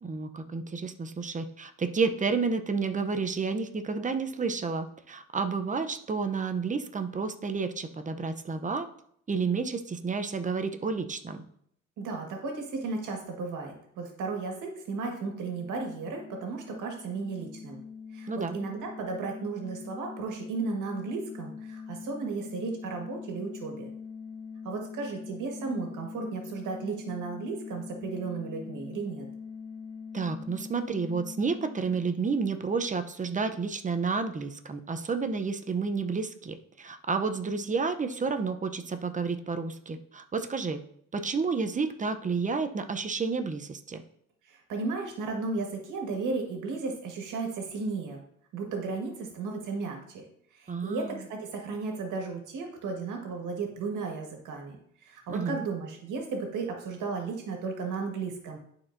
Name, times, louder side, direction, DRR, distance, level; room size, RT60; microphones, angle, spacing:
voice 1, 0.0-8.9 9.3-11.4 18.3-18.6 30.1-40.8 41.1-44.0 50.7-51.3 55.3-55.6, right 4 dB, 25° right, 8 dB, 0.7 m, -30 dB
voice 2, 12.0-17.8 18.1-23.9 24.6-29.2 44.5-48.2 48.5-50.2 50.5-54.8 55.0-58.6, right 4 dB, 80° right, 2 dB, 1.7 m, -34 dB
sound 1, 15.2-32.7, left 6 dB, 55° left, 0.9 m, -43 dB
11.0 x 4.4 x 2.6 m, 0.67 s
cardioid pair, 90°, 30 cm